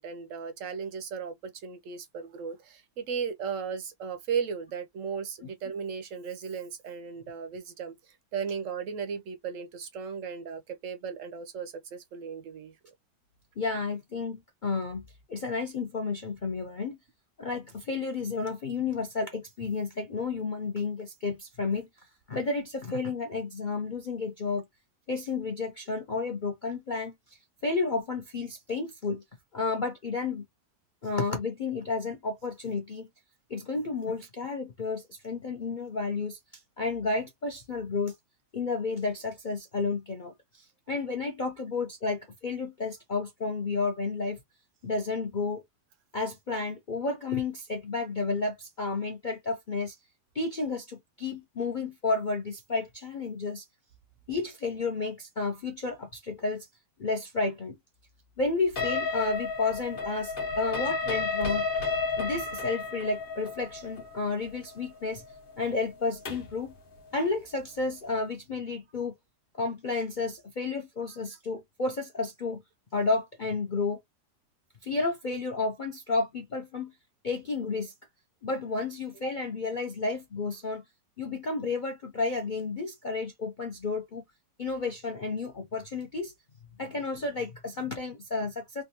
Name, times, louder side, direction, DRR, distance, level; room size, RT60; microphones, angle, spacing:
voice 1, 0.0-12.8, right 6 dB, 70° right, 0.7 m, -36 dB
voice 2, 13.6-15.0 15.3-17.0 17.4-21.9 22.3-24.6 25.1-27.1 27.6-29.2 29.5-30.4 31.0-33.1 33.5-36.4 36.8-38.1 38.5-44.4 44.8-45.6 46.1-49.9 50.3-53.6 54.3-56.7 57.0-57.8 58.4-61.7 62.2-65.2 65.6-66.7 67.1-69.1 69.5-72.6 72.9-74.0 74.8-76.9 77.2-77.9 78.4-80.8 81.2-84.2 84.6-86.3 86.8-88.8, left 3 dB, 65° left, 0.4 m, -31 dB
sound 1, 58.8-66.6, left 4 dB, 35° left, 1.0 m, -32 dB
3.5 x 2.4 x 2.7 m
omnidirectional pair, 1.9 m